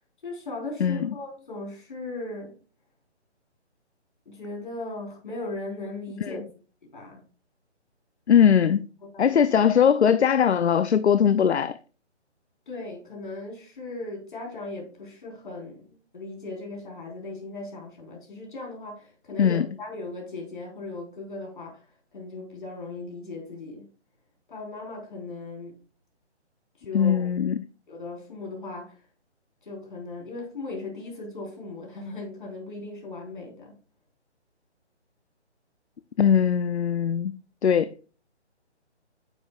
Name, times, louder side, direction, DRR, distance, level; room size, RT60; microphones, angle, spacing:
voice 1, 0.2-2.6 4.3-6.4 6.9-7.2 9.1-9.4 12.7-15.9 16.1-21.8 22.1-23.9 24.5-25.7 26.8-27.4 27.9-29.0 29.6-33.7, left 2 dB, 45° left, 4.5 m, -37 dB
voice 2, 8.3-8.8 9.2-11.8 19.4-19.7 26.9-27.6 36.2-37.3 37.6-37.9, left 8 dB, 70° left, 0.6 m, -20 dB
9.8 x 7.7 x 2.4 m
hypercardioid pair, 175°, 35 cm